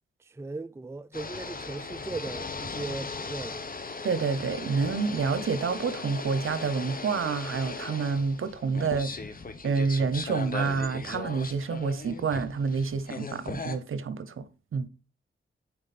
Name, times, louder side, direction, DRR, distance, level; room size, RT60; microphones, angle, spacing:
voice 1, 0.2-3.7, right 3 dB, 10° right, 0.4 m, -38 dB
sound 1, 1.1-13.8, left 4 dB, 40° left, 1.0 m, -38 dB
voice 2, 4.0-9.1 9.6-14.5 14.7-14.9, right 5 dB, 75° right, 0.8 m, -28 dB
8.7 x 4.5 x 4.2 m
cardioid pair, 50°, 21 cm